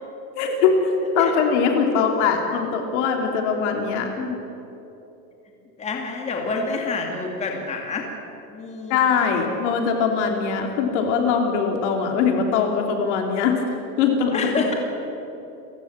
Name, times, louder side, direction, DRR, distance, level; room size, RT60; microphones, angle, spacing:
voice 1, 0.3-4.1 8.9-13.6 14.0-14.6, left 6 dB, 50° left, 3 dB, 3.3 m, -21 dB
voice 2, 5.8-8.0 8.5-9.0 14.3-14.7, left 4 dB, 15° left, 1 dB, 2.6 m, -28 dB
29.5 x 16.0 x 7.4 m, 3.0 s
supercardioid pair, 165°, 45 cm